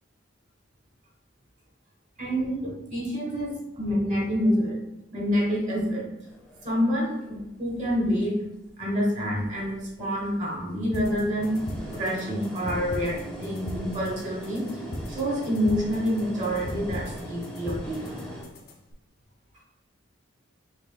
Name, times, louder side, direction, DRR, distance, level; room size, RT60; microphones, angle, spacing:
voice 1, 2.2-4.8 5.1-6.1 6.6-8.4 8.8-11.6 11.9-14.6 15.1-18.1, equal, 35° right, -3 dB, 1.0 m, -27 dB
sound 1, 6.2-7.6 8.2-8.7 9.4-9.9 10.6-18.4, equal, 5° left, 0.6 m, -41 dB
sound 2, 10.9-18.9, left 1 dB, 50° left, 0.5 m, -39 dB
5.7 x 2.5 x 2.2 m, 0.91 s
head